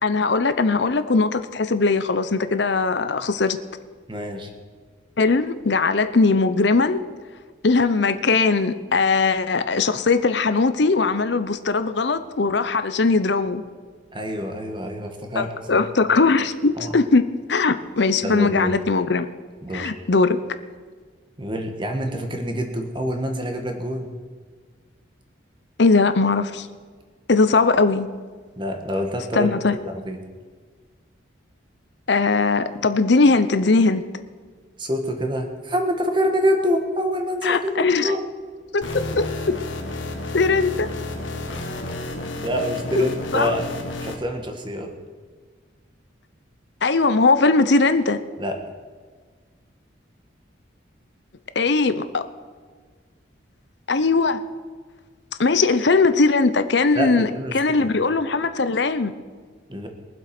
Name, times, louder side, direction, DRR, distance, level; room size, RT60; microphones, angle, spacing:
voice 1, 0.0-3.6 5.2-7.0 7.6-13.6 15.4-19.3 19.7-20.4 25.8-26.7 27.3-28.1 29.3-29.8 32.1-34.0 37.4-38.1 38.7-39.5 40.3-40.9 43.0-43.5 46.8-48.2 51.6-52.2 53.9-54.4 55.4-59.1, left 3 dB, 65° left, 11 dB, 0.7 m, -20 dB
voice 2, 4.1-4.5 14.1-15.8 16.8-17.0 18.2-18.7 19.6-19.9 21.4-24.1 28.6-29.5 29.9-30.2 34.8-38.3 42.4-43.7 44.0-44.9 48.4-48.5 56.9-57.9 59.7-59.9, equal, 25° right, 4 dB, 1.6 m, -26 dB
sound 1, 38.8-44.2, left 2 dB, 80° left, 1.8 m, -31 dB
22.0 x 7.8 x 5.9 m, 1.5 s
head